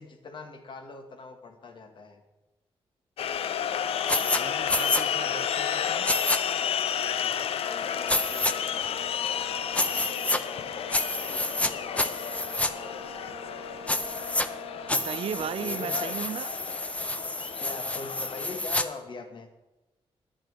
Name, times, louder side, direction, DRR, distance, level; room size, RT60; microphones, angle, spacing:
voice 1, 0.0-2.2 6.9-8.7 15.4-16.0 17.6-19.5, left 3 dB, 55° left, 5 dB, 1.4 m, -42 dB
sound 1, 3.2-18.6, left 9 dB, 75° left, 0.5 m, -32 dB
sound 2, 4.1-4.4 4.7-5.0 6.0-6.4 8.1-8.5 9.7-10.4 10.9-11.7 12.0-12.7 13.9-14.5 14.9-18.8, left 1 dB, 15° left, 0.6 m, -29 dB
voice 2, 4.2-6.1 14.9-16.5, right 8 dB, 70° right, 14 dB, 0.5 m, -36 dB
Brass instrument, 7.6-16.5, left 1 dB, 50° right, 1.2 m, -45 dB
10.5 x 10.5 x 4.6 m, 1.0 s
cardioid pair, 115°, 10 cm